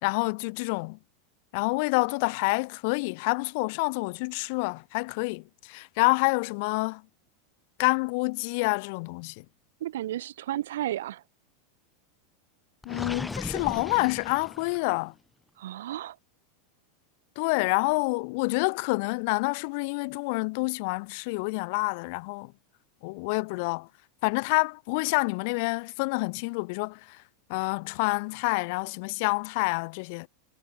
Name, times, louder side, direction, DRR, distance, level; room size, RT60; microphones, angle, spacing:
voice 1, 0.0-1.0 1.5-7.0 7.8-9.4 12.8-15.1 17.3-22.5 23.0-23.9 24.2-27.2 27.5-30.3, left 30 dB, 60° left, 3.1 m, -28 dB
voice 2, 9.8-11.2 15.6-16.1, right 13 dB, 85° right, 4.7 m, -33 dB
Gurgling, 12.8-15.0, left 2 dB, 10° left, 7.2 m, -37 dB
supercardioid pair, 135°, 0 cm